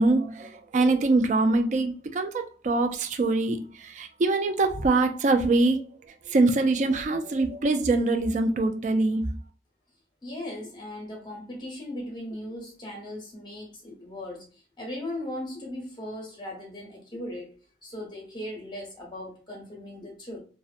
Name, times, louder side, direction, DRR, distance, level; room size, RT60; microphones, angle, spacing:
voice 1, 0.0-5.9 6.3-9.4, right 2 dB, 45° right, 0.3 m, -24 dB
voice 2, 10.2-14.5 14.8-17.5 17.8-20.4, left 1 dB, 25° left, 0.8 m, -38 dB
2.6 x 2.1 x 2.4 m
head